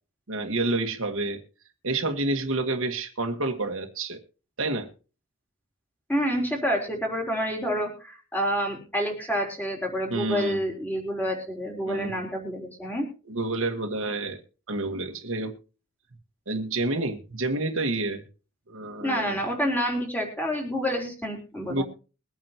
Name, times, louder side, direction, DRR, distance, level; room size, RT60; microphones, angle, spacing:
voice 1, 0.3-1.4 1.8-4.2 4.6-4.9 10.1-10.6 11.8-12.1 13.3-14.4 14.7-15.6 16.5-18.2 18.7-19.4 21.7-21.8, right 2 dB, 70° right, 4 dB, 1.6 m, -29 dB
voice 2, 6.1-13.1 19.0-21.8, equal, 10° left, 1 dB, 3.8 m, -28 dB
22.5 x 9.0 x 3.0 m, 0.35 s
head